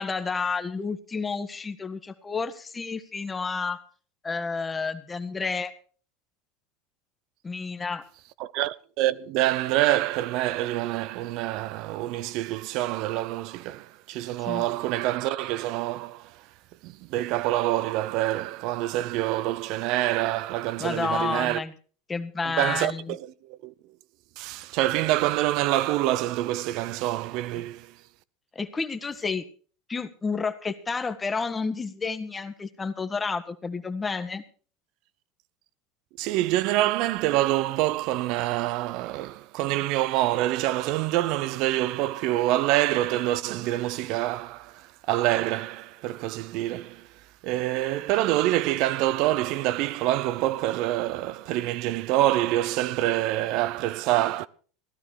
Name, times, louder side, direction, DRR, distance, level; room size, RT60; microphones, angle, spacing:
voice 1, 0.0-3.8 4.2-5.7 7.4-8.1 14.4-14.6 20.8-21.7 22.1-23.2 27.5-27.6 28.5-29.4 29.9-34.4, left 4 dB, 20° left, 1.5 m, -30 dB
voice 2, 8.4-16.4 16.8-21.6 22.6-23.2 23.5-23.7 24.4-27.9 36.2-47.1 47.4-54.5, right 15 dB, 60° right, 0.6 m, -26 dB
16.0 x 12.0 x 4.7 m
hypercardioid pair, 95°, 0 cm